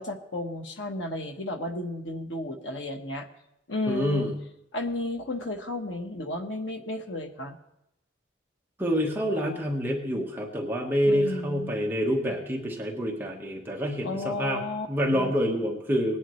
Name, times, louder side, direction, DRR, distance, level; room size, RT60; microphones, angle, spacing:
voice 1, 0.0-3.3 3.7-4.3 4.7-7.6 11.0-11.8 14.0-14.9 15.1-15.3, left 2 dB, 80° left, 4 dB, 1.3 m, -33 dB
voice 2, 3.9-4.3 8.8-14.6 14.9-16.2, equal, 10° right, -1 dB, 1.3 m, -27 dB
19.5 x 10.0 x 3.2 m, 0.84 s
head